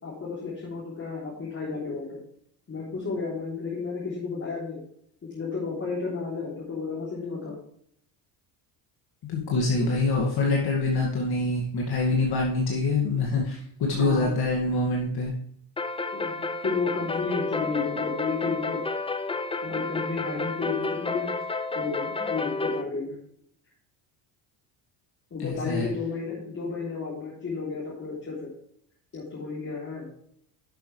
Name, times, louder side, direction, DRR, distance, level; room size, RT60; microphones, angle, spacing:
voice 1, 0.0-2.2 2.7-4.8 5.2-7.6 14.0-14.4 16.1-18.8 19.6-21.3 21.7-23.2 25.3-28.5 29.1-30.1, left 4 dB, 30° left, -7 dB, 3.6 m, -32 dB
voice 2, 9.3-15.3 25.4-25.9, left 3 dB, 55° left, -2 dB, 2.3 m, -25 dB
sound 1, 15.8-22.8, left 3 dB, 15° left, 0.6 m, -31 dB
11.5 x 6.3 x 3.3 m, 0.68 s
cardioid pair, 100°, 44 cm